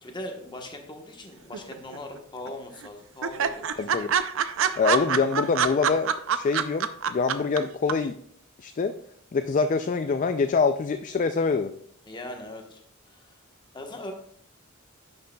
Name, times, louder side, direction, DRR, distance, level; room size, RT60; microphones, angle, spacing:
voice 1, 0.0-3.9 4.5-4.8 12.1-13.4 13.7-14.1, left 1 dB, 20° left, 3 dB, 1.1 m, -40 dB
sound 1, 1.5-2.2 2.5-2.6 2.8-2.9 3.2-7.6 7.9-8.0, right 7 dB, 65° right, 0.5 m, -25 dB
voice 2, 3.8-4.1 4.8-8.1 8.6-8.9 9.3-11.7, left 4 dB, 40° left, 9 dB, 0.3 m, -25 dB
11.0 x 6.5 x 2.3 m, 0.64 s
head